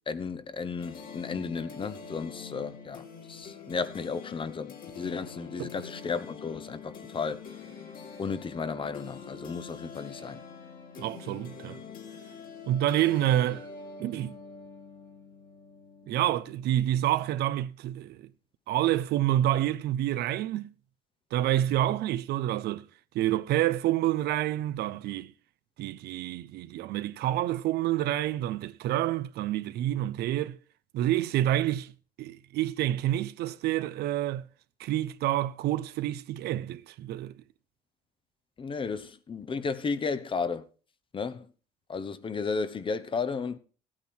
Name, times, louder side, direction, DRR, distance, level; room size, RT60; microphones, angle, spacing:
voice 1, 0.1-7.4 8.2-10.4 38.6-40.6 41.1-41.5 41.9-43.6, left 5 dB, 30° left, 0.9 m, -34 dB
sound 1, 0.8-17.4, left 5 dB, 55° left, 2.8 m, -45 dB
voice 2, 11.0-11.8 12.7-13.7 14.0-14.3 16.1-18.3 18.7-20.7 21.3-22.8 23.1-25.3 25.8-30.6 30.9-31.9 32.2-34.5 34.8-37.3, right 13 dB, 75° right, 0.7 m, -28 dB
15.0 x 8.8 x 4.4 m
cardioid pair, 110°, 17 cm